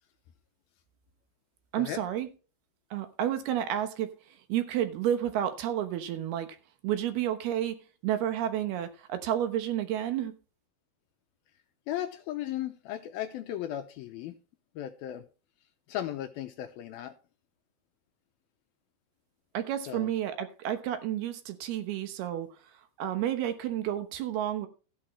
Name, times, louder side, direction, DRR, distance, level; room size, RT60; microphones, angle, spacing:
voice 1, 1.7-2.3 2.9-4.1 4.5-6.6 6.8-10.3 19.5-22.6 23.0-24.7, right 11 dB, 75° right, 2.9 m, -31 dB
voice 2, 11.9-14.4 14.8-15.2 15.9-17.1 19.9-20.1, left 12 dB, 80° left, 2.3 m, -36 dB
14.0 x 10.0 x 3.2 m
omnidirectional pair, 4.9 m